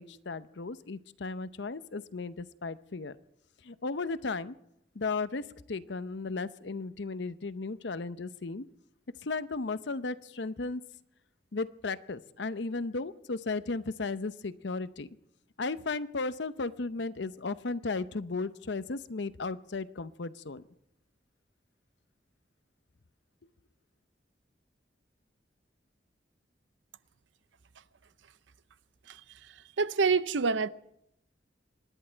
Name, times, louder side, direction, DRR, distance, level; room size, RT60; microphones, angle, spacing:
voice 1, 0.0-3.2 3.6-4.5 4.9-8.6 9.2-10.8 11.5-15.1 15.6-20.6, left 3 dB, 75° left, 0.7 m, -35 dB
voice 2, 29.1-30.7, right 4 dB, 85° right, 0.6 m, -28 dB
26.0 x 11.0 x 4.5 m
head